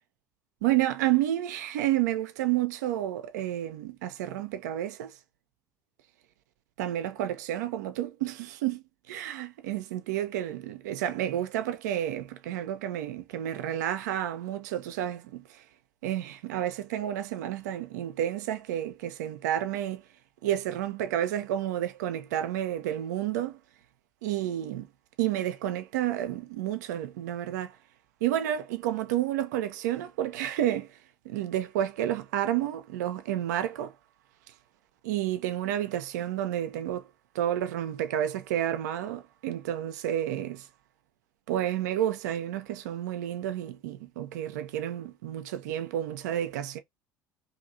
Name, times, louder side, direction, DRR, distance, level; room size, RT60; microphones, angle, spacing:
voice 1, 0.6-5.2 6.8-15.6 16.0-20.0 20.4-23.6 24.2-24.9 25.2-27.8 28.2-31.0 31.2-33.9 35.0-37.0 37.3-40.7 41.5-46.8, right 12 dB, 75° right, 0.4 m, -30 dB
2.7 x 2.6 x 2.7 m
hypercardioid pair, 60°, 9 cm